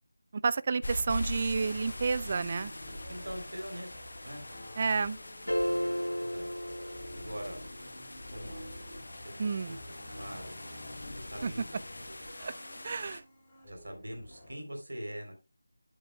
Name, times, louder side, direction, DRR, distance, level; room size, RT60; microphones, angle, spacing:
voice 1, 0.4-2.7 4.8-5.2 9.4-9.8 11.4-11.5 12.4-12.5 12.8-13.2, right 4 dB, 30° right, 0.3 m, -30 dB
sound 1, 0.8-13.2, left 1 dB, 55° left, 1.3 m, -43 dB
sound 2, 1.1-14.5, left 1 dB, 10° left, 3.7 m, -49 dB
voice 2, 3.1-3.9 4.2-4.4 6.2-6.5 7.1-7.6 8.3-8.6 9.1-9.8 10.1-10.6 11.1-11.8 13.7-15.4, equal, 60° right, 3.5 m, -42 dB
sound 3, 5.5-7.7, equal, 85° left, 1.2 m, -33 dB
9.7 x 8.3 x 2.3 m
figure-of-eight pair, 165°, 0 cm